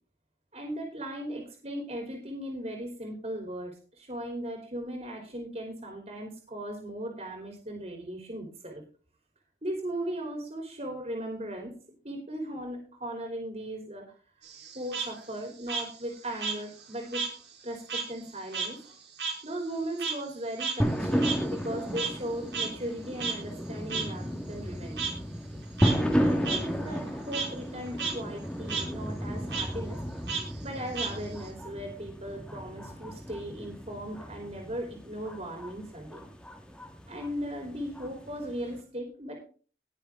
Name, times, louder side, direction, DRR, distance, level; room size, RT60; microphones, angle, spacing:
voice 1, 0.5-8.8 9.6-11.7 12.0-14.0 14.7-17.3 17.6-18.8 19.4-25.1 25.8-30.0 30.6-36.3 37.1-39.4, right 1 dB, 40° right, 1 dB, 3.1 m, -37 dB
Frog, 14.4-17.4 17.7-22.3 22.5-22.7 23.2-23.3 23.9-24.0 25.0-25.1 25.6-25.9 26.4-26.6 26.9-27.5 27.9-28.1 28.4-28.8 29.5-29.6 30.3-31.5, right 5 dB, 85° right, 5.3 m, -33 dB
sound 1, 20.8-38.8, equal, 5° left, 1.6 m, -33 dB
19.5 x 6.7 x 3.6 m, 0.38 s
head